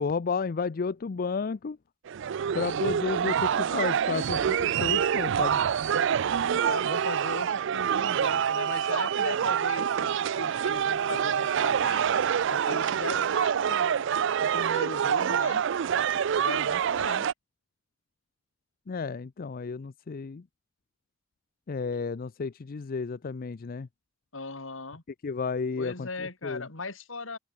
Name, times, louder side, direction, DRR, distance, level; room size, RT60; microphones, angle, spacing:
voice 1, 0.0-1.8 2.5-5.6 18.9-20.4 21.7-23.9 25.2-26.7, left 5 dB, 45° left, 0.5 m, -32 dB
sound 1, 2.1-17.3, right 8 dB, 65° right, 0.4 m, -26 dB
voice 2, 6.5-12.1 12.5-14.1 14.4-15.6 16.3-17.2 24.3-25.0 25.8-27.4, left 3 dB, 75° left, 3.1 m, -38 dB
open air
head